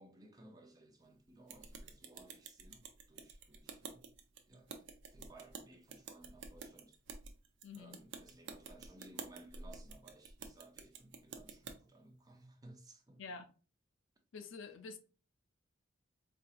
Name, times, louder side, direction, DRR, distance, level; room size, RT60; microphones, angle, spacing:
voice 1, 0.0-4.1 4.5-7.0 7.7-13.4, right 2 dB, 20° right, 0.6 m, -59 dB
sound 1, 1.5-11.8, right 5 dB, 60° right, 0.6 m, -50 dB
voice 2, 7.6-8.0 13.2-13.5 14.3-15.0, left 4 dB, 65° left, 0.5 m, -48 dB
4.5 x 2.8 x 2.5 m
head